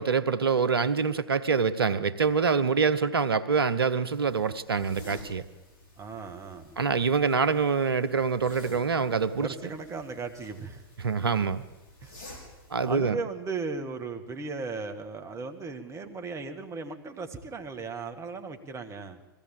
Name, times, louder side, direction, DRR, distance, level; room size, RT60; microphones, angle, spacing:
voice 1, 0.0-5.4 6.8-9.5 11.0-11.6 12.7-13.2, right 5 dB, 80° right, 14 dB, 1.1 m, -25 dB
sound 1, 4.1-13.0, left 1 dB, 60° left, 6.5 m, -50 dB
voice 2, 6.0-6.8 9.4-10.8 12.0-12.2 12.8-19.2, right 4 dB, 25° right, 7 dB, 1.9 m, -36 dB
22.0 x 16.0 x 7.4 m, 1.2 s
figure-of-eight pair, 100°, 12 cm